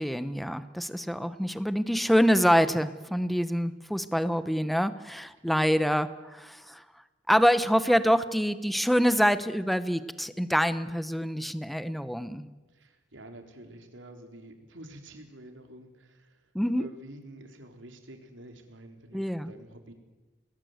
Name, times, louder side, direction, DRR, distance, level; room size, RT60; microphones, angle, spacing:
voice 1, 0.0-6.8 7.3-12.5 16.5-16.8 19.1-19.5, equal, ahead, 13 dB, 1.0 m, -26 dB
voice 2, 12.7-19.9, right 1 dB, 85° right, 5 dB, 3.9 m, -48 dB
28.0 x 20.0 x 8.1 m, 1.2 s
head